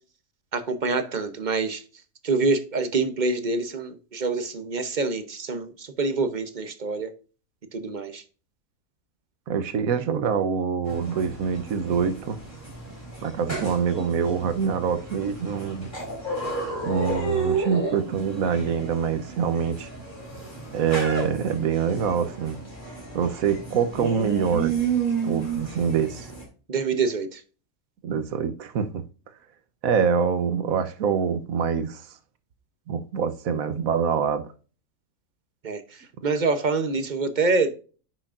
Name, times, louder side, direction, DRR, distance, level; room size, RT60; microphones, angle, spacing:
voice 1, 0.5-1.8 2.2-7.1 7.7-8.2 26.7-27.4 35.6-35.8 36.2-37.7, right 3 dB, 40° right, 0.9 m, -26 dB
voice 2, 9.5-12.4 13.2-15.9 16.8-19.9 20.7-22.6 23.1-24.7 25.2-26.3 28.0-29.0 29.8-32.1 32.9-34.5, right 6 dB, 75° right, 1.3 m, -25 dB
sound 1, 10.8-26.4, right 4 dB, 35° left, 3.7 m, -32 dB
10.0 x 6.3 x 2.5 m
omnidirectional pair, 1.5 m